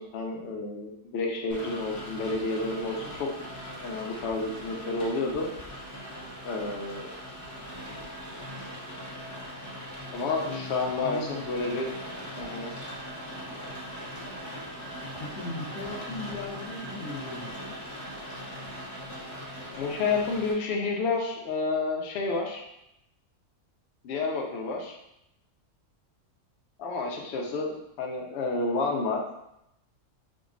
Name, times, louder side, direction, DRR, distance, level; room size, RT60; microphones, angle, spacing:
voice 1, 0.0-3.3 3.8-5.5 6.4-7.1 10.1-12.0 12.4-12.7 19.8-22.6 24.0-25.0 26.8-29.2, left 3 dB, 60° left, 0 dB, 0.8 m, -30 dB
Rain, 1.5-20.5, equal, 25° left, 0.3 m, -40 dB
voice 2, 10.4-11.5 15.2-17.8, left 2 dB, 90° left, 0 dB, 1.1 m, -38 dB
4.9 x 2.2 x 2.4 m, 0.83 s
omnidirectional pair, 1.5 m